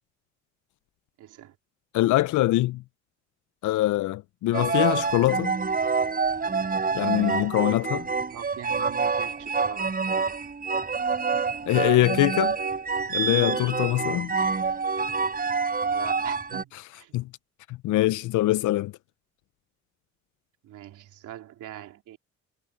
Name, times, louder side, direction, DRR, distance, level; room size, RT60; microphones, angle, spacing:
voice 1, 1.2-1.6 8.3-9.9 10.1-10.4 15.8-17.2 20.6-22.2, right 12 dB, 85° right, 3.5 m, -42 dB
voice 2, 1.9-2.8 3.6-5.5 6.9-8.1 11.7-12.6 13.1-14.3 17.1-17.3 17.7-18.9, left 16 dB, 80° left, 0.6 m, -23 dB
sound 1, 4.5-16.6, right 5 dB, 30° right, 3.7 m, -27 dB
cardioid pair, 90°, 30 cm